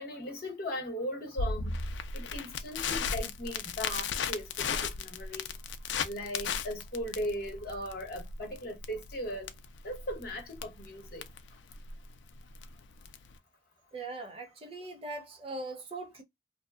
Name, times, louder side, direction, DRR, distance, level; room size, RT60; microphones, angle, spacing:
voice 1, 0.0-1.7 2.1-5.5 6.0-9.5 9.8-11.2, equal, 55° left, 1.0 m, -38 dB
Crackle, 1.4-13.4, left 5 dB, 85° left, 0.4 m, -36 dB
voice 2, 13.9-16.2, right 2 dB, 30° right, 0.5 m, -40 dB
2.6 x 2.2 x 2.3 m
head